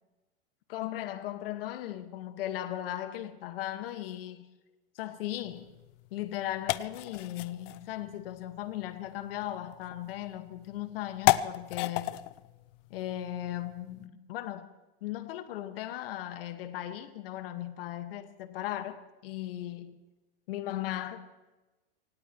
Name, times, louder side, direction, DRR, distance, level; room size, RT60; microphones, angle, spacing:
voice 1, 0.7-4.5 4.9-5.7 6.1-12.1 12.9-14.7 15.0-20.0 20.5-21.2, left 13 dB, 70° left, 1.7 m, -37 dB
sound 1, 5.4-14.1, left 18 dB, 50° left, 0.6 m, -35 dB
25.0 x 18.0 x 3.1 m
supercardioid pair, 135°, 30 cm